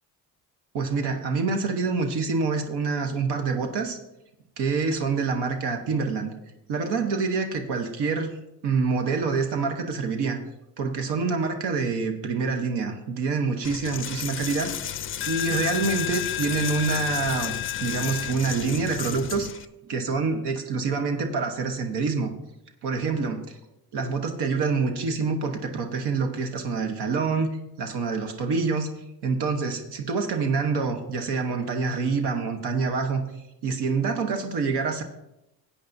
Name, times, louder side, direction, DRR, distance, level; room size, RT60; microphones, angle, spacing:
voice 1, 0.7-4.0 4.6-6.3 6.7-8.3 8.6-10.4 10.8-17.5 17.8-22.3 22.8-23.6 23.9-28.9 29.2-33.2 33.6-35.0, right 4 dB, 85° right, 5 dB, 1.1 m, -26 dB
Coin (dropping), 13.6-19.7, left 11 dB, 35° left, 0.4 m, -31 dB
16.5 x 8.5 x 2.7 m, 0.92 s
cardioid pair, 115°, 39 cm